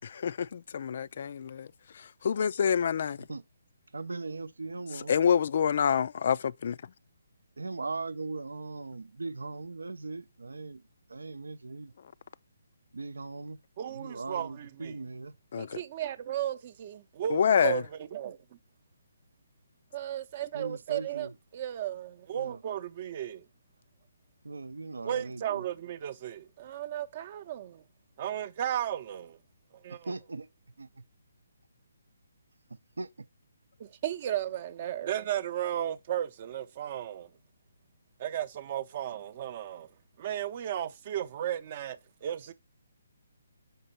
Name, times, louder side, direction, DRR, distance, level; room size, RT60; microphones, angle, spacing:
voice 1, 0.0-1.7 1.9-3.2 5.1-6.8 15.5-15.8 17.3-17.8, left 7 dB, 50° left, 0.3 m, -27 dB
voice 2, 3.9-5.1 7.6-10.8 11.1-11.9 12.9-13.6 13.9-15.3 20.5-21.3 22.3-22.6 24.4-25.6 30.1-30.5 30.8-31.0 33.0-33.1, right 3 dB, 75° right, 0.6 m, -39 dB
voice 3, 13.8-14.9 15.6-18.6 19.9-23.5 25.0-27.8 28.2-29.4 29.7-30.1 33.8-37.3 38.2-39.9 40.2-42.5, right 11 dB, 40° right, 0.7 m, -35 dB
6.7 x 5.4 x 4.2 m
figure-of-eight pair, 145°, 0 cm